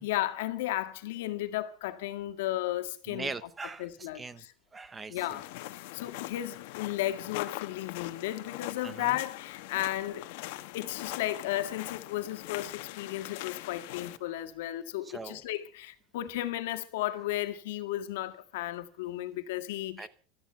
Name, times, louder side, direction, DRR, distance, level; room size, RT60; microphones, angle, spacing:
voice 1, 0.0-3.3 3.8-4.5 5.1-10.3 10.7-20.1, left 14 dB, 85° left, 1.8 m, -34 dB
voice 2, 3.1-4.4 4.7-5.4 8.8-9.2 15.0-15.4 20.0-20.1, right 4 dB, 10° right, 0.9 m, -41 dB
sound 1, 5.2-14.2, left 17 dB, 65° left, 1.3 m, -42 dB
16.5 x 13.5 x 5.7 m
cardioid pair, 170°, 0 cm